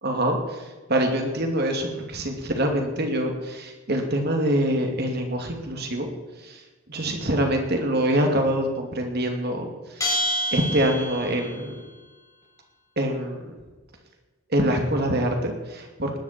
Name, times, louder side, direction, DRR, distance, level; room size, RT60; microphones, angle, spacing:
voice 1, 0.0-6.1 6.4-6.6 6.9-10.1 10.5-11.7 13.0-13.5 14.5-16.2, right 1 dB, 45° right, 3 dB, 2.6 m, -25 dB
Bell, 10.0-11.6, equal, 15° left, 3.9 m, -27 dB
19.5 x 12.5 x 4.5 m, 1.3 s
head